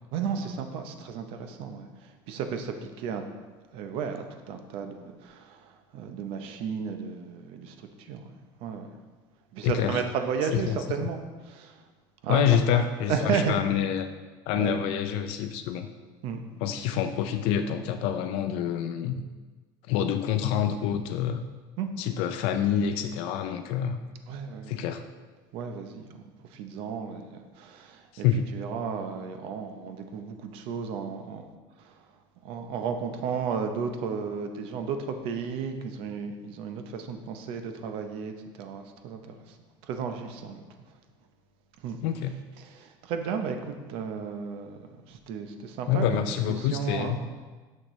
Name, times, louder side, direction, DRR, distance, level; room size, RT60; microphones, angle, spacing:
voice 1, 0.1-3.2 3.7-8.3 8.6-8.9 9.5-11.8 12.2-12.4 12.7-12.8 13.1-13.6 14.6-14.7 16.2-16.4 21.8-21.9 24.3-24.9 25.5-28.3 28.5-31.5 31.8-31.9 32.4-39.2 39.5-39.6 39.8-40.6 41.8-42.0 42.6-46.2 46.6-47.2, right 6 dB, 60° right, 6 dB, 0.7 m, -33 dB
voice 2, 9.6-10.0 10.5-11.1 12.3-14.1 14.5-15.9 16.6-19.2 19.9-21.4 22.0-24.0 24.7-25.0 28.2-28.5 42.0-42.4 45.9-47.3, left 9 dB, 65° left, 8 dB, 0.4 m, -27 dB
6.6 x 6.2 x 3.1 m, 1.3 s
cardioid pair, 140°, 11 cm